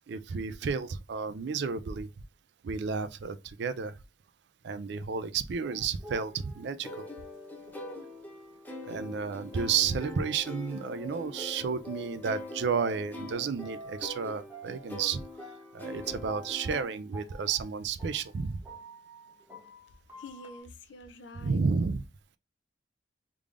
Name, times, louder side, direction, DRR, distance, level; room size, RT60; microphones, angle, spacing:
voice 1, 0.1-2.1 2.6-3.9 4.6-7.0 8.8-15.2 15.7-18.6 21.4-22.0, right 5 dB, 65° right, 0.4 m, -32 dB
sound 1, 5.6-10.5 11.0-14.2 14.5-20.6, equal, 10° right, 1.6 m, -49 dB
sound 2, 6.8-16.8, left 1 dB, 10° left, 0.7 m, -43 dB
voice 2, 20.2-21.6, left 2 dB, 70° left, 0.5 m, -48 dB
3.5 x 3.3 x 2.4 m
head